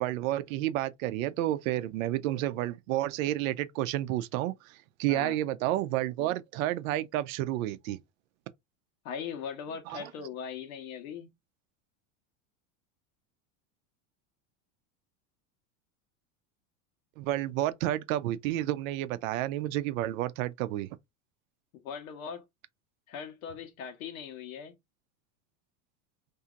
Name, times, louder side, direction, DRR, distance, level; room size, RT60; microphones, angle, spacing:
voice 1, 0.0-8.0 9.9-10.1 17.2-20.9, right 14 dB, 80° right, 0.6 m, -30 dB
voice 2, 9.0-11.3 21.8-22.4 23.1-24.7, left 7 dB, 85° left, 1.0 m, -40 dB
2.8 x 2.7 x 2.4 m
supercardioid pair, 125°, 41 cm